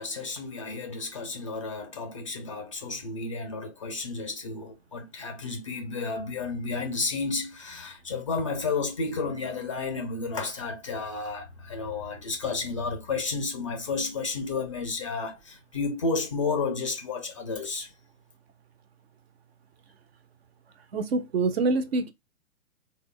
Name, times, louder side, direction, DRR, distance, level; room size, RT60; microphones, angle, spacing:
voice 1, 0.0-17.9, left 4 dB, 25° left, 0.4 m, -32 dB
voice 2, 20.9-22.1, right 3 dB, 50° right, 0.5 m, -25 dB
3.4 x 2.2 x 3.6 m
figure-of-eight pair, 125°, 41 cm